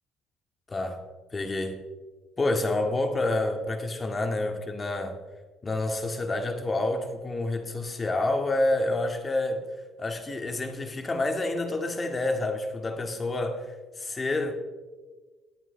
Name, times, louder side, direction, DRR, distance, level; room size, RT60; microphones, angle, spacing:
voice 1, 0.7-1.0 1.3-1.8 2.4-5.2 5.6-9.7 10.0-14.5, left 2 dB, 30° left, 6 dB, 2.0 m, -28 dB
21.0 x 9.1 x 3.4 m, 1.4 s
supercardioid pair, 65°, 0 cm